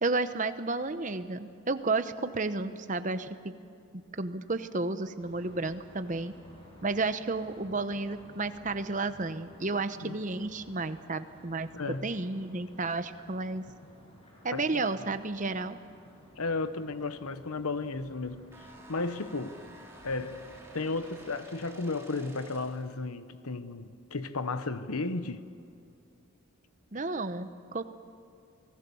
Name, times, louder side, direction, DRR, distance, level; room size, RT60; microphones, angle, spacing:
voice 1, 0.0-3.5 3.9-6.3 6.8-11.7 12.0-13.7 14.4-15.8 26.9-27.8, right 3 dB, 35° right, 0.9 m, -32 dB
sound 1, 5.2-21.3, equal, 25° left, 6.8 m, -55 dB
voice 2, 11.7-12.1 14.5-14.6 16.4-18.5 18.9-19.6 20.0-20.4 20.7-25.5, left 3 dB, 90° left, 1.0 m, -34 dB
sound 2, 18.5-22.9, right 1 dB, 10° right, 3.0 m, -51 dB
28.5 x 19.5 x 7.1 m
head